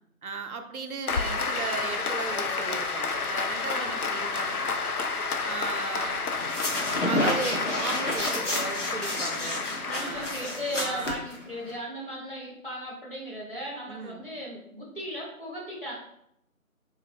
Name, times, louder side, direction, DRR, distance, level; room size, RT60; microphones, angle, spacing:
voice 1, 0.2-4.7 5.4-6.3 7.0-9.7 9.9-10.3 10.8-11.2 13.9-14.3, right 4 dB, 80° right, 7 dB, 0.6 m, -36 dB
Applause, 1.1-11.1, left 4 dB, 85° left, 0.6 m, -31 dB
voice 2, 3.7-4.4 9.8-15.9, equal, 40° left, -6 dB, 1.4 m, -37 dB
sound 1, 6.4-11.7, left 1 dB, 55° left, 0.9 m, -30 dB
3.8 x 3.4 x 2.6 m, 0.74 s
figure-of-eight pair, 175°, 43 cm